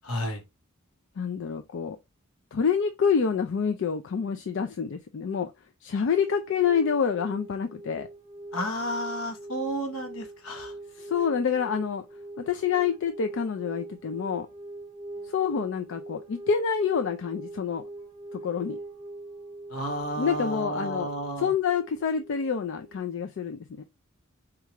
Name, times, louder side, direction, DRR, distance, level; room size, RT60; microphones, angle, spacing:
voice 1, 0.0-0.4 8.5-10.7 19.7-21.5, equal, 80° left, 1.1 m, -32 dB
voice 2, 1.2-2.0 2.5-5.5 5.8-8.1 11.0-12.0 12.4-14.5 15.2-17.8 18.3-18.8 20.2-21.1 21.4-23.8, left 6 dB, 60° left, 0.4 m, -27 dB
sound 1, 6.1-23.0, right 2 dB, 10° left, 2.2 m, -42 dB
4.5 x 2.4 x 2.9 m
head